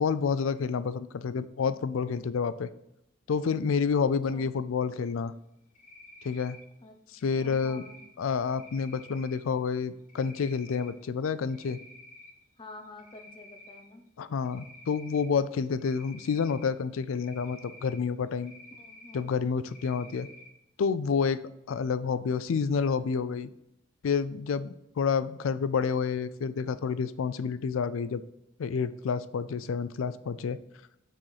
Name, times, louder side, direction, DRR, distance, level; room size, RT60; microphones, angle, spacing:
voice 1, 0.0-2.7 3.3-5.3 6.2-6.6 7.2-7.8 8.2-11.8 14.2-18.5 19.1-20.3 20.8-21.4 21.7-23.5 24.0-28.2 28.6-30.6, left 5 dB, 85° left, 15 dB, 0.4 m, -29 dB
Cricket, 5.7-6.6 7.2-8.1 8.5-9.4 10.1-10.9 11.3-12.3 12.7-13.8 14.4-15.3 15.8-16.7 17.2-18.0 18.4-19.2 19.7-20.5, left 2 dB, 40° left, 1.2 m, -51 dB
voice 2, 6.8-8.0 12.6-14.0 18.8-19.6, left 2 dB, 25° left, 5 dB, 0.8 m, -49 dB
6.2 x 4.3 x 4.8 m, 0.82 s
head